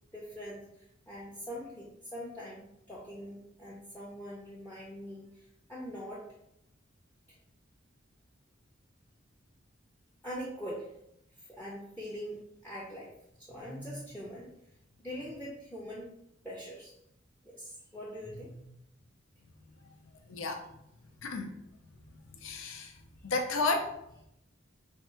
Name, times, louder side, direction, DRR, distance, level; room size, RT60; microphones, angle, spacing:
voice 1, 0.1-6.3 7.3-7.4 10.2-10.9 11.4-13.1 13.4-14.6 15.0-16.1 16.4-16.9 17.4-18.7, equal, 10° left, -4 dB, 0.6 m, -43 dB
voice 2, 20.3-20.6 21.2-21.5 22.4-22.9 23.2-23.9, left 3 dB, 75° left, 5 dB, 0.6 m, -31 dB
3.6 x 2.3 x 4.3 m, 0.79 s
head